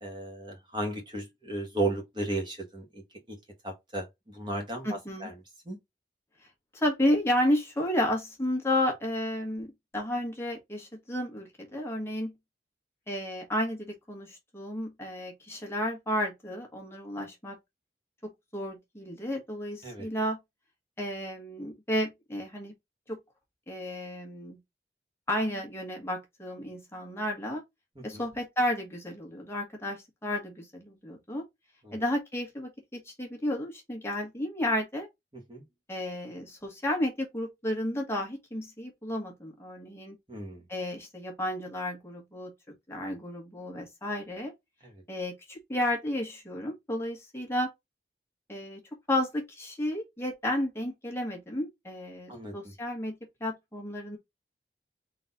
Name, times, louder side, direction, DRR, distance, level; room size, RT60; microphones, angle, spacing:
voice 1, 0.0-3.0 3.3-3.4 3.6-5.3 5.6-5.8 19.8-20.1 28.0-28.2 31.8-32.0 35.5-35.6 40.3-40.6 44.8-45.0 52.3-52.7, right 2 dB, 25° right, 1.5 m, -35 dB
voice 2, 4.8-5.3 6.7-12.3 13.1-17.6 18.5-20.4 21.0-22.7 23.1-23.2 23.7-24.6 25.3-27.6 28.0-31.4 31.9-35.1 35.9-40.1 40.7-42.5 42.9-44.5 45.1-47.7 48.5-48.8 49.1-54.2, left 1 dB, 15° left, 1.5 m, -32 dB
4.0 x 3.2 x 4.0 m
head